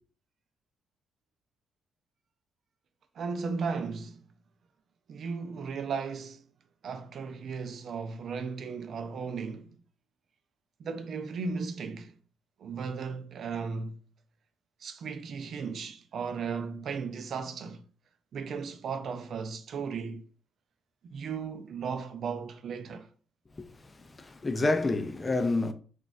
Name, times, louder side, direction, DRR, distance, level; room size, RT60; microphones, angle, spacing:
voice 1, 3.2-4.2 5.1-6.4 6.8-9.7 10.8-12.1 12.6-14.0 14.8-17.8 18.3-20.2 21.1-23.1, right 5 dB, 60° right, 0.4 m, -36 dB
voice 2, 24.2-25.7, left 2 dB, 25° left, 0.4 m, -28 dB
3.9 x 2.3 x 2.4 m
cardioid pair, 90°, 0 cm